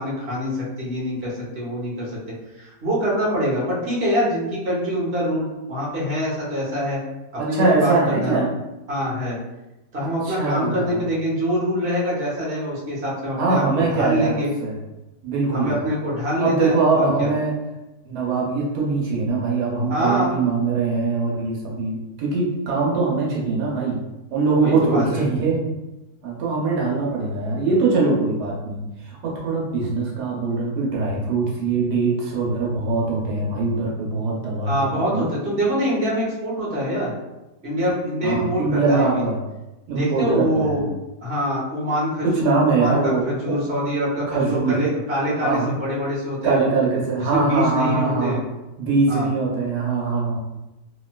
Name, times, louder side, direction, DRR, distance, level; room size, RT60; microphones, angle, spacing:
voice 1, 0.0-2.1 2.5-7.0 7.4-8.5 8.9-9.4 9.9-14.5 15.5-17.3 19.9-20.3 24.5-25.2 34.6-37.1 37.6-39.3 39.9-40.8 41.2-46.6 47.2-48.4 49.1-49.3, equal, 45° right, -6 dB, 1.0 m, -24 dB
voice 2, 7.4-8.5 10.0-11.0 13.4-14.8 15.2-15.9 16.4-17.6 18.0-24.0 24.3-25.6 26.2-35.3 38.2-39.4 39.9-40.8 42.2-43.6 44.3-44.8 45.4-45.7 46.4-48.4 48.8-50.4, right 3 dB, 80° right, -3 dB, 1.3 m, -22 dB
3.0 x 2.8 x 2.2 m, 1.0 s
omnidirectional pair, 1.7 m